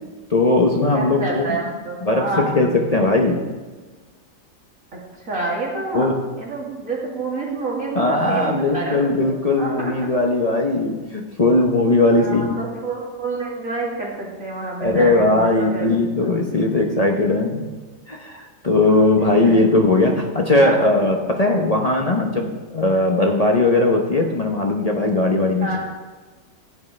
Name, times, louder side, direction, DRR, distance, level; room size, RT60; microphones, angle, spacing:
voice 1, 0.3-1.4 2.0-3.4 5.9-6.2 7.9-12.5 14.8-17.7 18.1-25.8, left 2 dB, 35° left, 2 dB, 0.8 m, -19 dB
voice 2, 0.9-2.5 4.9-6.1 6.4-9.9 12.0-15.9 19.2-19.7 20.6-20.8 25.6-25.8, right 3 dB, 75° right, -4 dB, 3.0 m, -28 dB
15.5 x 9.8 x 3.3 m, 1.3 s
omnidirectional pair, 1.4 m